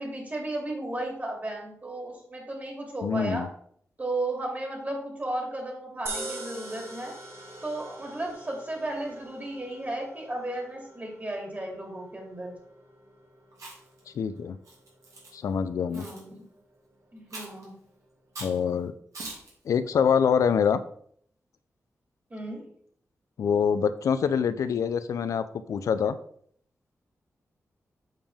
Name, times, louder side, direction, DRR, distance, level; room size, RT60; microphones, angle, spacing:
voice 1, 0.0-3.5 4.0-7.1 7.6-12.5 15.9-16.4 17.1-17.7 22.3-22.6, right 1 dB, 30° right, 0 dB, 2.5 m, -34 dB
voice 2, 3.0-3.5 14.1-14.6 15.3-16.0 18.4-18.9 19.7-20.8 23.4-26.2, left 7 dB, 85° left, 12 dB, 0.4 m, -25 dB
sound 1, 6.1-18.4, right 2 dB, 50° right, 1.4 m, -45 dB
Chewing mastication, 13.5-14.0 14.7-15.3 15.9-16.2 17.3-17.6 18.4-18.6 19.1-19.5, right 2 dB, 80° right, 2.4 m, -41 dB
7.4 x 5.1 x 3.5 m, 0.63 s
cardioid pair, 70°, 5 cm